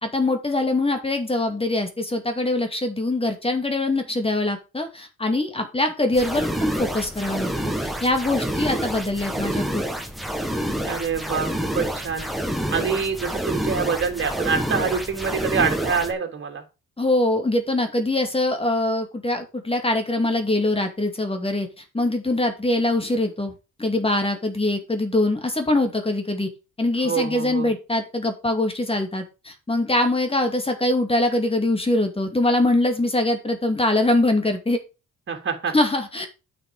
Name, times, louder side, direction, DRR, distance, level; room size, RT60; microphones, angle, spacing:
voice 1, 0.0-7.5 7.8-9.8 17.0-21.7 21.9-23.5 23.8-26.5 26.8-34.8 35.7-36.3, left 2 dB, 20° left, 6 dB, 2.4 m, -23 dB
sound 1, 6.1-16.1, equal, ahead, 1.8 m, -28 dB
voice 2, 10.9-11.5 11.7-12.3 12.7-16.6 27.0-27.7 35.3-35.7, right 6 dB, 40° right, 4 dB, 3.1 m, -25 dB
9.1 x 6.3 x 4.8 m, 0.30 s
cardioid pair, 90°, 30 cm